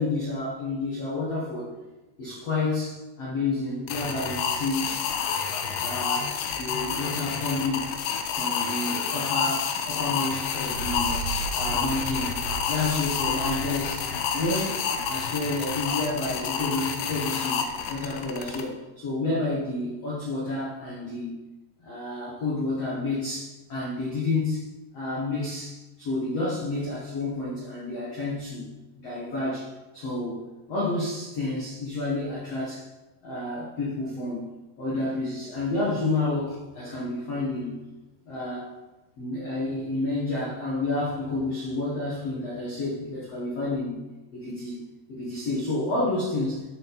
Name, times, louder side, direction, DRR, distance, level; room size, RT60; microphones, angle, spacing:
voice 1, 0.0-1.7 2.2-4.8 5.8-6.3 6.6-7.9 8.3-11.2 11.5-17.6 17.9-21.4 21.8-24.6 24.9-28.7 29.0-29.7 29.9-30.4 30.7-32.8 33.2-34.5 34.8-37.8 38.2-38.7 39.2-44.0 44.3-44.8 45.1-46.6, left 2 dB, 70° left, -7 dB, 1.4 m, -30 dB
sound 1, 3.9-18.6, left 7 dB, 90° left, 2.3 m, -29 dB
sound 2, 10.5-15.8, right 4 dB, 60° right, 1.4 m, -36 dB
12.0 x 4.5 x 4.2 m, 1.1 s
omnidirectional pair, 5.5 m